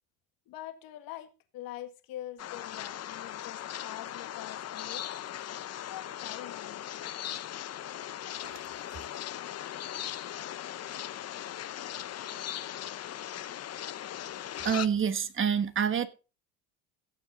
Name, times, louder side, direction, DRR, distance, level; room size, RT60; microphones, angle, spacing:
voice 1, 0.5-5.6 5.9-7.0, left 13 dB, 75° left, 1.8 m, -45 dB
sound 1, 2.4-14.9, left 11 dB, 45° left, 0.8 m, -39 dB
voice 2, 14.6-16.1, right 7 dB, 35° right, 1.4 m, -27 dB
16.5 x 7.3 x 3.7 m
supercardioid pair, 95°, 36 cm